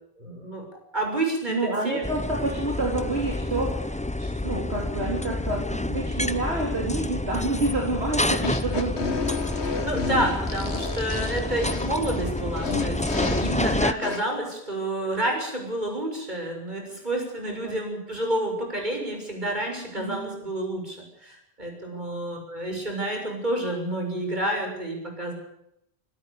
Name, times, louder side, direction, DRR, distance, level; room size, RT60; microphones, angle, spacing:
voice 1, 0.2-0.7 0.9-2.0 8.3-8.5 9.5-25.3, right 1 dB, 45° right, 2 dB, 7.0 m, -29 dB
voice 2, 1.5-9.3 13.4-13.8 17.4-17.8 19.9-20.3 21.9-22.2, right 2 dB, 75° right, -1 dB, 4.2 m, -29 dB
sound 1, 2.0-13.9, left 1 dB, 10° left, 0.6 m, -29 dB
sound 2, 8.4-14.2, left 5 dB, 90° left, 1.8 m, -31 dB
25.5 x 13.0 x 8.5 m, 0.78 s
omnidirectional pair, 1.1 m